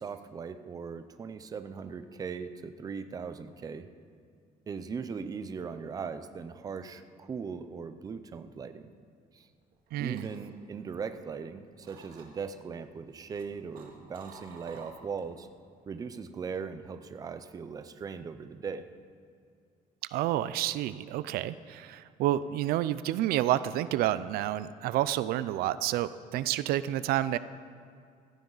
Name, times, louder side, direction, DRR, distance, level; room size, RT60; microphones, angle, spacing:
voice 1, 0.0-3.9 4.7-8.9 9.3-9.5 10.0-15.5 15.9-18.9, right 5 dB, 25° right, 10 dB, 0.6 m, -39 dB
sound 1, 9.6-11.5 11.8-12.6 13.1-15.4 15.7-16.0, right 4 dB, 70° right, 2.0 m, -52 dB
voice 2, 9.9-10.3 20.1-27.4, right 13 dB, 90° right, 15 dB, 0.5 m, -29 dB
15.5 x 14.5 x 4.0 m, 2.2 s
cardioid pair, 170°, 15 cm